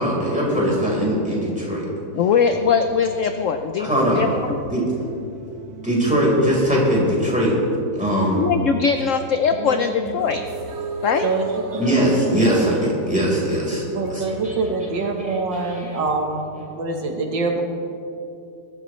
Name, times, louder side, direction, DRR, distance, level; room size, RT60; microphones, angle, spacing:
voice 1, 0.0-1.9 3.8-4.3 4.7-4.8 5.8-7.6 7.9-8.4 11.7-13.8 14.1-14.5 15.2-16.0, equal, 5° right, -5 dB, 3.9 m, -21 dB
voice 2, 2.1-4.6 8.4-10.4 11.0-11.3, left 6 dB, 70° left, 7 dB, 0.7 m, -21 dB
sound 1, 2.5-16.1, right 3 dB, 55° right, 1.3 m, -37 dB
voice 3, 9.6-10.1 11.2-12.2 12.5-12.6 13.9-17.6, right 3 dB, 75° right, 3 dB, 1.9 m, -25 dB
21.5 x 13.0 x 3.2 m, 2.7 s
omnidirectional pair, 2.0 m